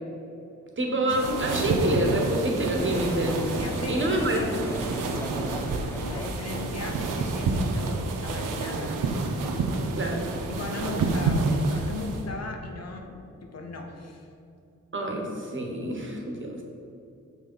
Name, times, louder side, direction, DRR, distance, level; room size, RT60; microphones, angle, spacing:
voice 1, 0.8-3.4 3.9-4.4 9.9-10.3 14.9-16.6, right 1 dB, 40° right, 1 dB, 1.4 m, -27 dB
sound 1, 1.1-12.3, right 3 dB, 90° right, 0.7 m, -29 dB
sound 2, 2.7-7.4, left 2 dB, 10° left, 0.3 m, -38 dB
voice 2, 3.6-4.6 6.0-9.0 10.5-14.3, left 3 dB, 55° left, 3 dB, 0.9 m, -37 dB
6.2 x 3.8 x 5.5 m, 2.6 s
cardioid pair, 55°, 31 cm